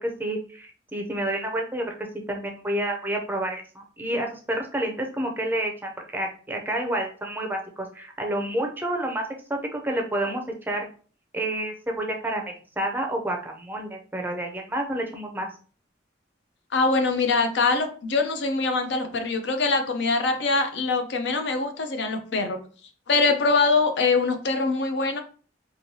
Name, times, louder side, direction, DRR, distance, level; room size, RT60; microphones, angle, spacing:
voice 1, 0.0-1.9 2.3-10.9 11.3-15.5, right 1 dB, 10° right, 2 dB, 0.5 m, -29 dB
voice 2, 16.7-22.6 23.1-25.2, left 3 dB, 70° left, 6 dB, 0.5 m, -23 dB
3.1 x 2.7 x 2.7 m, 0.40 s
head